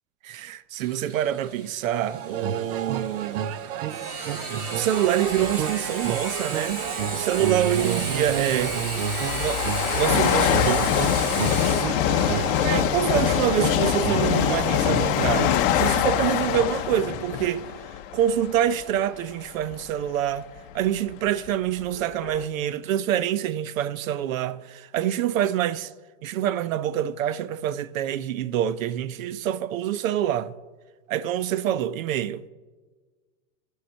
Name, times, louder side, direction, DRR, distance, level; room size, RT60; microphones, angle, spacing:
voice 1, 0.2-3.4 4.7-6.8 7.1-8.8 9.3-9.6 9.9-11.1 12.6-17.7 18.1-20.5 20.7-25.9 26.2-30.5 31.1-32.4, right 11 dB, 90° right, 0.7 m, -26 dB
Sawing, 0.8-16.2, right 3 dB, 65° right, 3.4 m, -35 dB
sound 1, 2.1-15.5, right 9 dB, 50° right, 0.5 m, -31 dB
sound 2, 5.3-5.6 6.7-6.8 7.6-19.0 19.6-19.8 20.6-20.7 20.9-22.4, left 10 dB, 45° left, 0.7 m, -24 dB
14.0 x 4.8 x 6.3 m
supercardioid pair, 155°, 39 cm